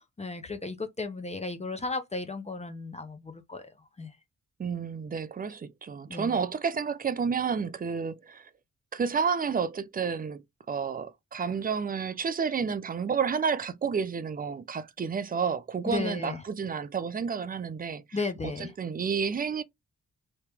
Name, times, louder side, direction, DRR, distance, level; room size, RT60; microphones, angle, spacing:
voice 1, 0.2-3.6 4.0-4.1 6.1-6.4 15.9-16.4 18.1-18.7, left 3 dB, 20° left, 0.5 m, -34 dB
voice 2, 4.6-8.5 8.9-10.4 10.7-19.6, right 6 dB, 30° right, 0.4 m, -30 dB
3.0 x 2.9 x 3.3 m
cardioid pair, 110°, 32 cm